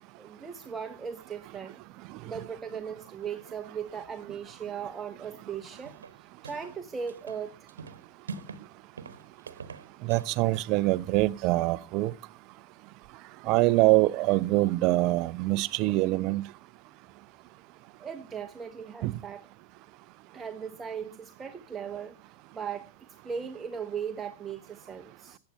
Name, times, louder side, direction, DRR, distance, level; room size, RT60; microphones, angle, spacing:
voice 1, 0.2-1.8 2.2-7.7 18.0-19.5 20.3-22.9 23.2-25.4, right 7 dB, 15° right, 1.0 m, -38 dB
sound 1, 5.8-6.8 7.1-8.7 9.0-10.4, right 5 dB, 70° right, 1.2 m, -43 dB
voice 2, 10.0-12.1 13.5-16.4 19.0-19.1, right 18 dB, 40° right, 0.6 m, -24 dB
15.0 x 8.9 x 5.4 m
figure-of-eight pair, 90°, 0 cm